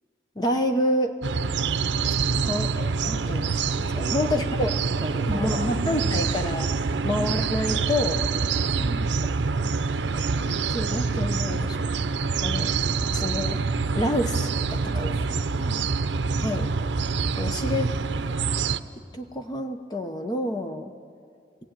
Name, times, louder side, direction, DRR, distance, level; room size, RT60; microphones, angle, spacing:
voice 1, 0.4-1.2 2.4-4.7 5.3-6.7 7.0-8.2 9.6-9.7 10.1-12.0 12.4-12.7 13.1-13.6 13.9-15.2 16.4-16.7 17.4-17.9 19.1-20.9, left 1 dB, 25° left, 5 dB, 0.8 m, -28 dB
sound 1, 1.2-18.8, right 4 dB, 70° right, 0.6 m, -26 dB
voice 2, 2.2-2.6 3.9-4.5 4.9-6.2 6.9-7.3 8.6-9.1 14.9-15.9, right 1 dB, 35° right, 4 dB, 2.1 m, -35 dB
17.5 x 16.5 x 9.0 m, 2.2 s
head